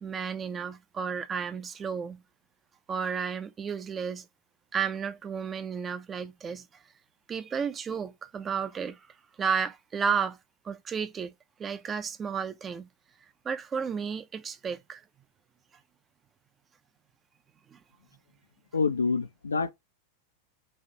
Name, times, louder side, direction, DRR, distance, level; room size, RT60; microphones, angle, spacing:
voice 1, 0.0-2.2 2.9-4.3 4.7-6.8 7.3-9.0 9.4-10.4 10.6-11.3 11.6-12.9 13.4-15.0 17.7-17.8, right 6 dB, 20° right, 0.4 m, -32 dB
voice 2, 18.7-19.7, left 4 dB, 75° left, 0.4 m, -27 dB
4.2 x 2.5 x 2.7 m
figure-of-eight pair, 90°, 0 cm